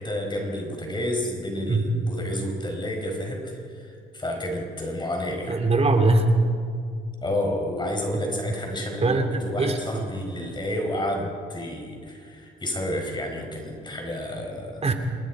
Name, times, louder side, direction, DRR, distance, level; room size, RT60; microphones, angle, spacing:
voice 1, 0.0-5.6 7.2-14.8, left 1 dB, 20° left, 2 dB, 5.1 m, -30 dB
voice 2, 5.4-6.3 9.0-10.1 14.8-14.9, right 2 dB, 30° right, 5 dB, 2.8 m, -22 dB
28.0 x 19.5 x 4.9 m, 2.3 s
cardioid pair, 90°, 20 cm